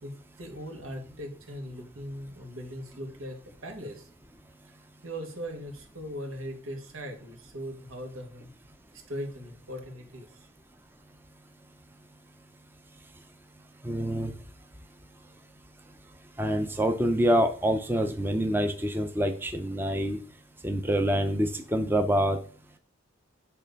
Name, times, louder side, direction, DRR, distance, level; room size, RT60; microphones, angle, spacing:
voice 1, 0.0-4.1 4.6-4.7 5.0-8.5 8.9-10.3, equal, 90° right, 3 dB, 1.8 m, -39 dB
voice 2, 13.8-14.3 16.4-20.2 20.6-22.4, equal, 10° right, 6 dB, 0.5 m, -26 dB
8.8 x 3.3 x 5.2 m, 0.40 s
head